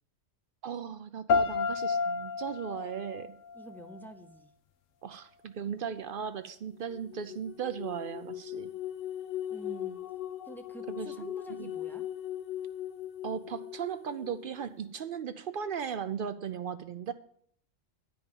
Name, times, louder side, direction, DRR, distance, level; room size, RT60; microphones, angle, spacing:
voice 1, 0.6-3.3 5.0-8.7 10.9-11.1 11.6-11.7 13.2-17.1, right 7 dB, 60° right, 11 dB, 0.6 m, -37 dB
sound 1, 1.3-4.3, left 5 dB, 85° left, 1.1 m, -31 dB
voice 2, 3.5-4.5 9.5-10.0 10.4-12.0, right 1 dB, 5° left, 7 dB, 0.4 m, -47 dB
sound 2, 6.8-14.7, left 11 dB, 60° left, 0.6 m, -39 dB
10.5 x 5.2 x 7.0 m, 0.65 s
omnidirectional pair, 1.3 m